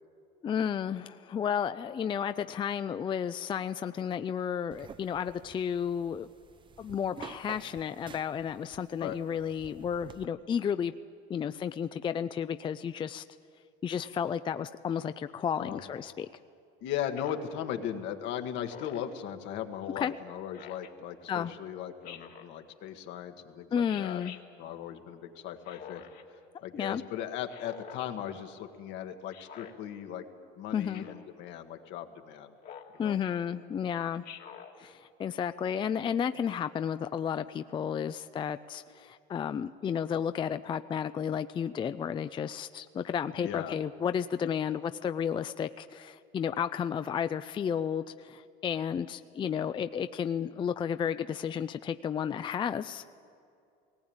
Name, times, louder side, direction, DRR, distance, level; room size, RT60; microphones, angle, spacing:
voice 1, 0.4-6.3 6.8-10.9 11.3-13.2 13.8-16.3 20.0-20.1 21.3-21.5 23.7-24.4 26.7-27.0 30.7-31.1 33.0-34.2 34.8-53.1, left 8 dB, 25° left, 11 dB, 0.4 m, -32 dB
sound 1, 4.7-10.3, right 6 dB, 25° right, 0.6 m, -50 dB
voice 2, 16.8-24.2 24.6-26.0 26.6-30.2 30.6-32.5 32.9-33.2 43.4-43.8, left 10 dB, 70° left, 6 dB, 1.6 m, -38 dB
Speech synthesizer, 17.2-17.5 18.7-19.1 20.5-20.9 22.0-22.5 23.9-24.4 25.6-26.2 27.5-28.0 29.3-29.7 30.9-31.3 32.6-33.0 34.2-34.7, left 8 dB, 50° left, 1.7 m, -47 dB
19.0 x 17.5 x 8.8 m, 2.5 s
cardioid pair, 115°, 20 cm